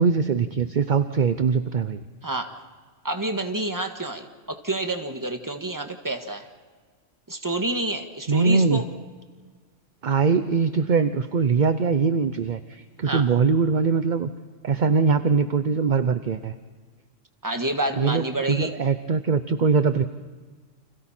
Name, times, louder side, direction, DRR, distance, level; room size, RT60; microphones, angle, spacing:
voice 1, 0.0-2.0 8.3-8.8 10.0-14.3 14.6-16.5 18.0-20.0, right 5 dB, 45° right, 11 dB, 0.8 m, -22 dB
voice 2, 2.2-2.5 3.0-6.5 7.3-8.8 13.1-13.3 17.4-18.7, right 2 dB, 15° right, 5 dB, 1.6 m, -28 dB
30.0 x 26.5 x 4.4 m, 1.5 s
omnidirectional pair, 1.3 m